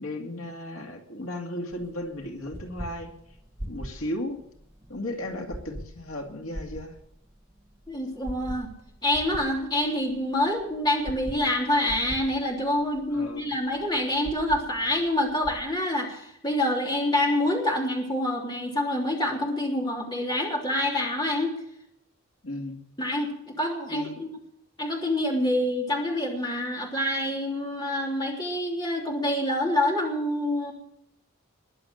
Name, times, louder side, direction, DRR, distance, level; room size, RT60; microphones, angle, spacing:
voice 1, 0.0-3.1 3.6-4.4 4.9-7.0 13.1-13.5 22.4-22.8 23.9-24.2, left 1 dB, 80° left, 2 dB, 2.4 m, -35 dB
sound 1, 1.7-15.7, equal, 15° right, 1.4 m, -43 dB
voice 2, 7.9-8.7 9.0-21.5 23.0-24.3 24.8-30.7, left 1 dB, 20° left, -1 dB, 3.4 m, -26 dB
21.5 x 7.5 x 6.5 m, 0.76 s
head